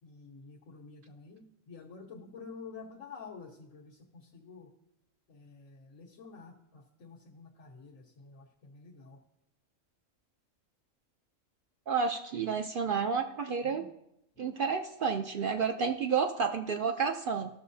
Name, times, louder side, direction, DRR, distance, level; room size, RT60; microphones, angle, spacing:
voice 1, 0.0-4.7 5.3-9.2 13.6-13.9 14.3-14.6, left 4 dB, 90° left, -7 dB, 1.7 m, -50 dB
voice 2, 11.9-13.8 14.4-17.5, right 5 dB, 55° right, 5 dB, 0.6 m, -30 dB
15.5 x 6.5 x 2.7 m, 0.81 s
omnidirectional pair, 1.3 m